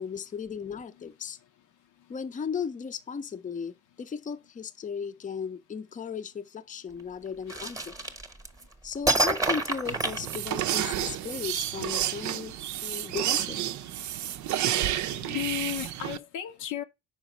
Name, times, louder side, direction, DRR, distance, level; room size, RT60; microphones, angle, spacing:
voice 1, 0.0-1.4 2.1-7.9 8.8-12.6 12.8-13.6, left 6 dB, 25° left, 0.5 m, -36 dB
sound 1, 7.5-8.6 9.1-10.9, right 2 dB, 10° right, 0.9 m, -27 dB
sound 2, 9.8-16.2, right 12 dB, 65° right, 0.5 m, -30 dB
voice 2, 15.0-16.8, left 12 dB, 70° left, 0.7 m, -34 dB
5.0 x 4.6 x 5.2 m
supercardioid pair, 75°, 31 cm